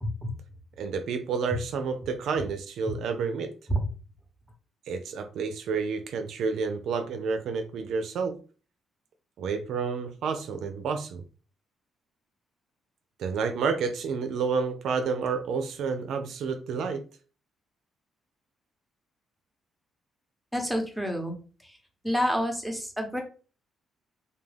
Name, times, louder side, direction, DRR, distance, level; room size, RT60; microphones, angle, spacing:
voice 1, 0.0-0.3 2.8-3.0 3.7-3.8 20.5-21.3 21.6-21.8 22.0-23.2, equal, ahead, 3 dB, 0.8 m, -28 dB
voice 2, 0.8-3.5 4.9-8.4 9.4-11.2 13.2-17.0, right 5 dB, 75° right, 7 dB, 0.4 m, -30 dB
2.3 x 2.2 x 3.2 m, 0.37 s
cardioid pair, 90°, 0 cm